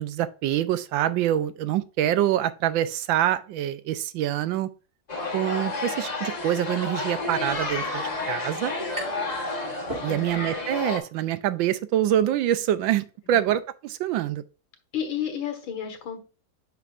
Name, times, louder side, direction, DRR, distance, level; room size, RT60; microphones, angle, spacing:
voice 1, 0.0-4.7 5.3-8.7 10.0-14.4, right 12 dB, 80° right, 1.3 m, -25 dB
sound 1, 5.1-11.0, left 3 dB, 25° left, 1.0 m, -31 dB
sound 2, 8.9-9.4 9.7-10.6, right 1 dB, 30° right, 3.5 m, -38 dB
voice 2, 14.9-16.2, left 9 dB, 85° left, 2.2 m, -31 dB
8.1 x 5.9 x 2.5 m
omnidirectional pair, 2.1 m